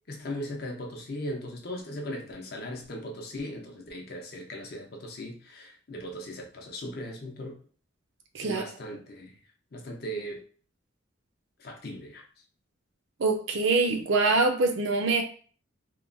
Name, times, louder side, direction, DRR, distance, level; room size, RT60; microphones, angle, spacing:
voice 1, 0.1-7.6 8.4-9.4 9.7-10.4 11.6-12.3, equal, 50° left, 2 dB, 0.6 m, -38 dB
voice 2, 13.2-15.2, right 3 dB, 65° right, 5 dB, 0.5 m, -24 dB
2.9 x 2.2 x 2.5 m, 0.42 s
head